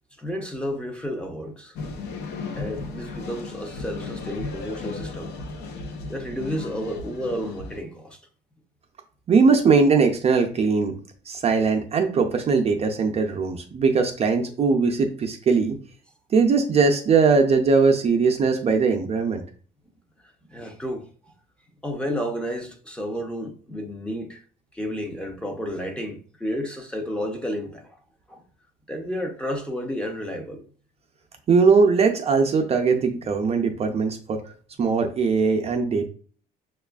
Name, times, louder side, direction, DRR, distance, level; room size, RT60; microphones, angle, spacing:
voice 1, 0.2-1.8 2.6-5.3 6.1-8.2 20.5-21.1 21.8-24.4 24.7-28.0 28.3-28.4 28.9-30.7, equal, 5° left, 0.7 m, -31 dB
sound 1, 1.8-7.8, left 4 dB, 70° left, 0.7 m, -35 dB
voice 2, 9.3-10.9 11.3-15.8 16.3-19.4 31.5-34.4 34.8-36.1, right 4 dB, 35° right, 0.5 m, -20 dB
5.9 x 2.4 x 2.3 m
cardioid pair, 115°, 18 cm